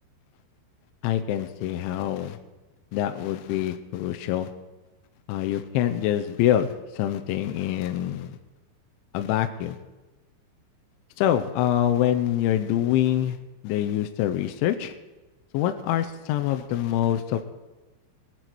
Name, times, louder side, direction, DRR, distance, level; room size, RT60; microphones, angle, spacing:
voice 1, 1.0-2.4 2.9-4.5 5.3-8.4 9.1-9.8 11.2-13.4 13.6-14.9 15.5-17.5, left 11 dB, 85° left, 7 dB, 3.0 m, -25 dB
23.0 x 8.2 x 4.6 m, 1.1 s
omnidirectional pair, 5.5 m